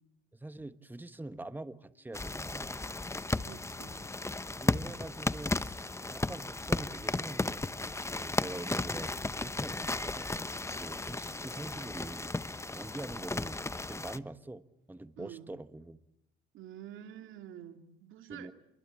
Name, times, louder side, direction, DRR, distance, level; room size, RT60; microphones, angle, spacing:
voice 1, 0.3-2.8 4.6-7.6 8.0-10.3 10.8-12.3 12.7-13.6 13.9-16.0 18.3-18.5, right 2 dB, 10° right, 11 dB, 1.3 m, -44 dB
sound 1, 2.1-14.2, left 2 dB, 15° left, 1.0 m, -35 dB
voice 2, 3.4-4.0 15.2-15.5 16.5-18.5, right 10 dB, 85° right, 6 dB, 2.7 m, -48 dB
28.0 x 22.5 x 8.7 m, 0.85 s
cardioid pair, 90°, 20 cm